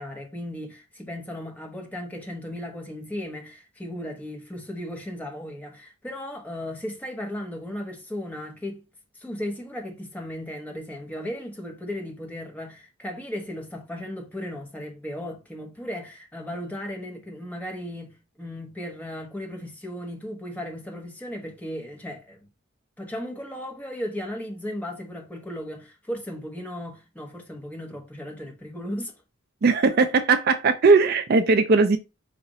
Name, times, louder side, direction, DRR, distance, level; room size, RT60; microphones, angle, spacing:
voice 1, 0.0-8.8 9.1-22.4 23.0-29.1 31.8-32.0, left 1 dB, 5° left, 1.0 m, -36 dB
voice 2, 29.6-32.0, right 4 dB, 45° right, 0.4 m, -19 dB
5.0 x 2.5 x 4.0 m
head